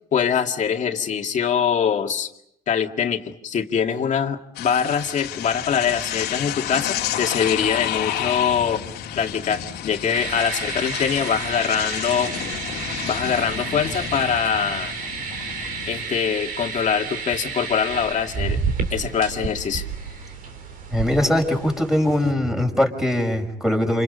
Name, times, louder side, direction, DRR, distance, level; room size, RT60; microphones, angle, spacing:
voice 1, 0.1-2.3 2.7-8.8 9.2-12.3 13.0-14.9 15.9-18.6 18.9-19.8, left 7 dB, 45° left, 3 dB, 2.2 m, -23 dB
sound 1, 4.5-16.0, left 10 dB, 75° left, 2.2 m, -30 dB
sound 2, 10.1-22.3, right 5 dB, 60° right, 4.0 m, -31 dB
voice 2, 20.9-24.0, left 1 dB, 5° right, 3 dB, 5.8 m, -21 dB
28.5 x 28.5 x 5.3 m, 0.75 s
cardioid pair, 110°, 17 cm